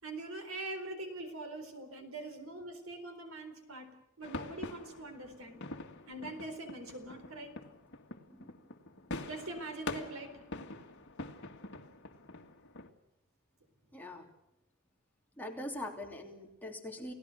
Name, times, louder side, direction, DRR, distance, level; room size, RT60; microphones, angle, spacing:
voice 1, 0.0-5.6 6.1-7.6 9.2-10.4, right 2 dB, 70° right, 7 dB, 4.2 m, -43 dB
sound 1, 4.2-12.9, left 2 dB, 55° left, 2.1 m, -45 dB
voice 2, 8.3-8.7 9.1-9.2 13.9-14.3 15.3-17.1, left 1 dB, 10° left, 0 dB, 3.1 m, -43 dB
30.0 x 17.5 x 6.6 m, 0.86 s
head